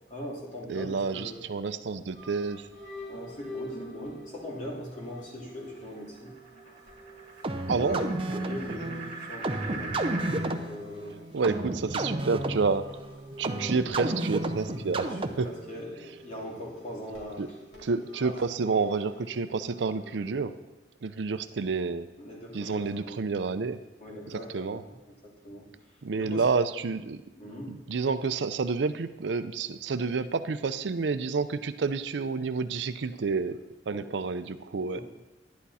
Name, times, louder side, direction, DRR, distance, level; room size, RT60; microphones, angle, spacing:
voice 1, 0.1-1.4 3.1-6.3 6.6-6.7 7.8-10.1 10.4-11.6 14.9-15.2 15.4-17.4 18.2-18.4 22.2-23.2 24.0-24.9 25.2-25.7 26.2-26.5 27.4-27.7 33.9-34.2 34.9-35.0, left 1 dB, 45° left, -4 dB, 2.9 m, -40 dB
voice 2, 0.7-2.7 7.7-8.0 10.2-10.3 11.3-13.1 13.4-15.5 17.4-17.5 17.8-20.5 21.0-22.1 22.5-23.8 24.3-24.8 26.0-27.2 27.7-33.6 33.9-35.0, right 4 dB, 70° right, 11 dB, 0.5 m, -29 dB
sound 1, 1.8-20.4, equal, 70° left, 3.6 m, -48 dB
sound 2, 3.8-10.5, right 3 dB, 45° right, 2.2 m, -43 dB
sound 3, 7.4-15.6, right 2 dB, 30° right, 0.7 m, -32 dB
11.5 x 10.5 x 4.2 m, 1.0 s
head